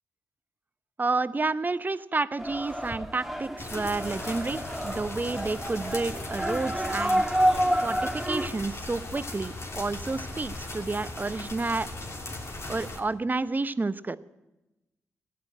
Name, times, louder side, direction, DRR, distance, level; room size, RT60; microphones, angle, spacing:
voice 1, 1.0-7.2 7.8-11.9 12.7-14.2, right 3 dB, 30° right, 15 dB, 0.8 m, -30 dB
sound 1, 2.4-8.5, equal, 5° right, 1.8 m, -29 dB
sound 2, 3.6-13.0, left 2 dB, 50° left, 3.1 m, -38 dB
15.0 x 10.5 x 8.8 m, 1.0 s
hypercardioid pair, 40°, 6 cm